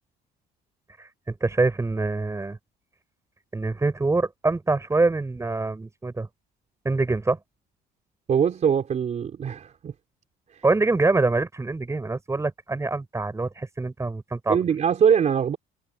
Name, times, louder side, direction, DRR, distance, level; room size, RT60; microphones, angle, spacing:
voice 1, 1.0-2.6 3.5-6.3 6.8-7.4 10.6-14.6, right 3 dB, 15° right, 6.8 m, -25 dB
voice 2, 8.3-9.9 10.5-10.6 14.5-15.6, right 7 dB, 45° right, 3.6 m, -22 dB
cardioid pair, 110°, 17 cm